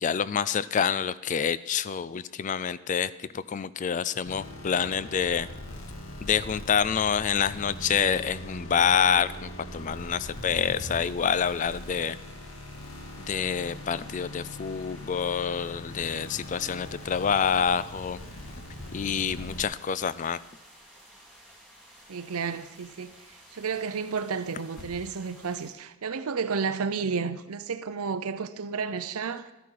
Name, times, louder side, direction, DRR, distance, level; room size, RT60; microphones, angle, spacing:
voice 1, 0.0-5.5 6.2-12.2 13.3-18.2 18.9-20.4, left 7 dB, 35° left, 0.3 m, -27 dB
sound 1, 4.2-19.6, left 1 dB, 60° left, 1.3 m, -41 dB
sound 2, 11.0-25.7, equal, 5° left, 3.0 m, -54 dB
sound 3, 19.4-19.9 20.2-20.5 20.7-20.8 21.1-21.2 21.9-23.3 23.7-26.1, left 1 dB, 90° left, 1.7 m, -56 dB
voice 2, 22.1-23.1 23.5-29.5, right 5 dB, 80° right, 0.6 m, -31 dB
12.5 x 12.5 x 4.7 m
head